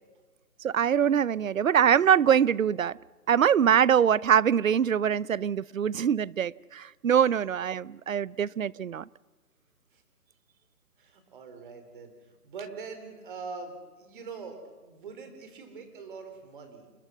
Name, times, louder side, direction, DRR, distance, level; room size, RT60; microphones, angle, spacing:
voice 1, 0.6-3.0 3.3-9.0, right 8 dB, 60° right, 0.6 m, -23 dB
voice 2, 11.0-16.9, right 4 dB, 35° right, 4.0 m, -43 dB
29.0 x 19.5 x 6.2 m
hypercardioid pair, 160°, 46 cm